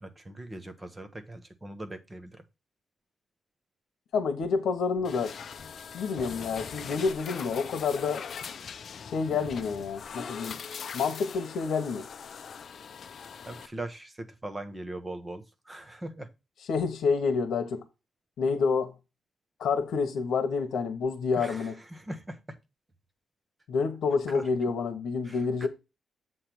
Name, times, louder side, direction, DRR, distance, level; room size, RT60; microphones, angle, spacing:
voice 1, 0.0-2.4 13.5-16.3 21.3-22.6 24.3-24.5 25.2-25.7, right 1 dB, 15° right, 1.0 m, -41 dB
voice 2, 4.1-5.4 5.9-8.2 9.0-10.6 10.9-12.1 16.7-17.8 18.4-18.9 19.6-21.7 23.7-25.7, left 5 dB, 85° left, 1.0 m, -28 dB
sound 1, 5.0-13.7, left 6 dB, 50° left, 0.5 m, -41 dB
7.6 x 3.3 x 5.9 m
wide cardioid pair, 150°, 0 cm